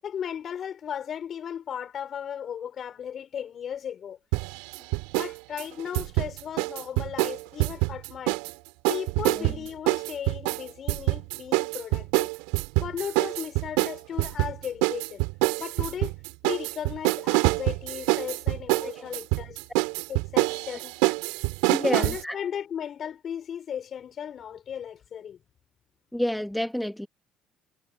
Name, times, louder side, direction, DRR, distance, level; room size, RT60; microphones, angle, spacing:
voice 1, 0.0-4.2 4.8-4.9 5.2-8.4 8.9-12.3 12.8-15.2 15.6-16.1 16.4-19.6 20.1-21.0 21.8-25.4, left 8 dB, 50° left, 6.8 m, -36 dB
sound 1, 4.3-5.3 5.6-8.5 8.8-22.2, right 28 dB, 80° right, 5.5 m, -26 dB
voice 2, 21.7-22.3 26.1-27.1, equal, 5° left, 2.8 m, -29 dB
supercardioid pair, 70°, 0 cm